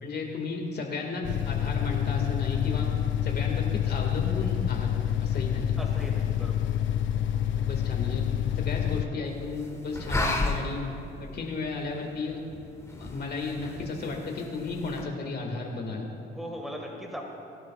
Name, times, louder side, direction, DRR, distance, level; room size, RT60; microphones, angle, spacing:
voice 1, 0.0-2.9 3.2-4.9 5.2-5.7 7.6-8.3 8.6-10.8 11.2-12.4 12.9-16.1, left 3 dB, 55° left, 1 dB, 2.1 m, -34 dB
sound 1, 1.2-9.0, left 10 dB, 70° left, 0.7 m, -27 dB
voice 2, 5.8-6.7 16.3-17.2, equal, ahead, 0 dB, 1.9 m, -39 dB
sound 2, 6.0-15.0, left 2 dB, 15° left, 1.5 m, -36 dB
22.0 x 11.5 x 2.5 m, 2.9 s
cardioid pair, 90°, 20 cm